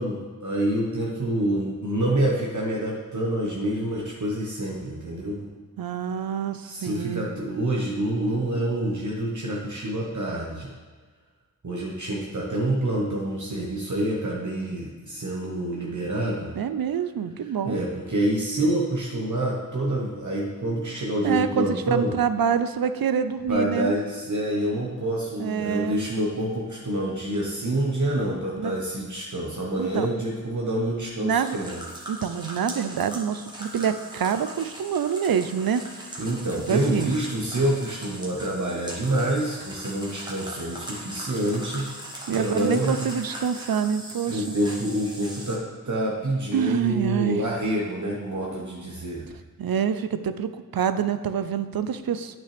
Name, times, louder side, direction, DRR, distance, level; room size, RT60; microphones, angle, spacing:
voice 1, 0.0-5.5 6.6-10.7 11.6-16.5 17.6-22.2 23.5-31.8 36.2-41.9 42.3-43.1 44.3-49.2, right 1 dB, 55° right, -3 dB, 1.2 m, -27 dB
voice 2, 5.8-7.3 16.6-17.8 21.2-23.9 25.4-26.1 28.6-28.8 29.8-30.1 31.2-31.6 32.1-35.8 36.1-36.2 36.7-37.1 42.3-44.5 46.5-47.4 49.6-52.4, right 7 dB, 75° right, 11 dB, 0.5 m, -26 dB
sound 1, 31.4-45.6, right 1 dB, 10° right, 1.5 m, -40 dB
8.7 x 6.1 x 3.4 m, 1.4 s
wide cardioid pair, 55°, 36 cm